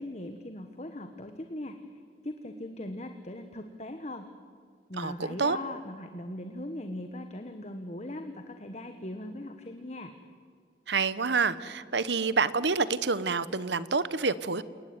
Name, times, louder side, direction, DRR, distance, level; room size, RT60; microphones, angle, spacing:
voice 1, 0.0-4.3 4.9-10.1, left 1 dB, 35° left, 7 dB, 1.4 m, -40 dB
voice 2, 5.0-5.6 10.9-14.6, right 4 dB, 70° right, 16 dB, 1.1 m, -28 dB
29.0 x 19.0 x 9.6 m, 2.3 s
head